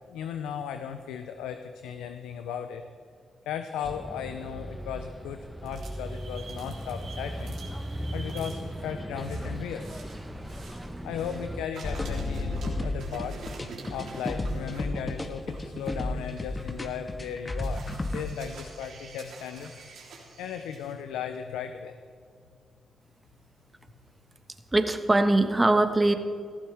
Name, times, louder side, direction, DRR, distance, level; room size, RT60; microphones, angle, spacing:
voice 1, 0.1-2.9 3.5-7.5 8.1-9.9 10.3-10.5 11.0-13.4 13.9-17.8 18.1-19.8 20.4-22.0, left 8 dB, 90° left, 8 dB, 0.6 m, -36 dB
Bus, 3.8-11.7, equal, 5° right, 1.2 m, -37 dB
sound 1, 5.6-11.4 11.7-20.9, right 3 dB, 75° right, 3.4 m, -47 dB
sound 2, 11.8-18.2, left 2 dB, 30° left, 1.5 m, -32 dB
voice 2, 24.7-26.1, right 2 dB, 25° right, 7 dB, 1.5 m, -21 dB
18.5 x 14.5 x 3.5 m, 2.2 s
supercardioid pair, 50°, 0 cm